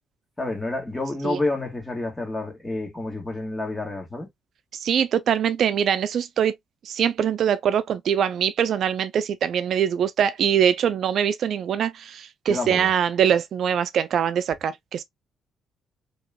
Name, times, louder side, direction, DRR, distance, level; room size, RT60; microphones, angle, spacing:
voice 1, 0.4-4.3 12.5-12.9, left 2 dB, 15° left, 1.7 m, -29 dB
voice 2, 4.7-6.6 6.8-15.0, right 8 dB, 65° right, 0.4 m, -23 dB
3.1 x 2.9 x 2.2 m
cardioid pair, 90°, 0 cm